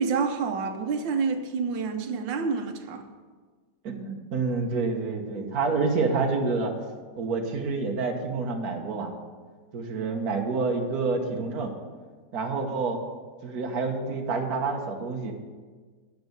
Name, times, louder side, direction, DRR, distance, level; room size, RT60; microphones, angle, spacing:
voice 1, 0.0-3.1 10.0-10.1, right 5 dB, 80° right, 1.6 m, -28 dB
voice 2, 3.8-6.8 7.2-9.1 9.7-11.7 12.3-13.0 13.4-15.3, right 4 dB, 55° right, 1.7 m, -28 dB
10.0 x 6.6 x 7.9 m
omnidirectional pair, 2.0 m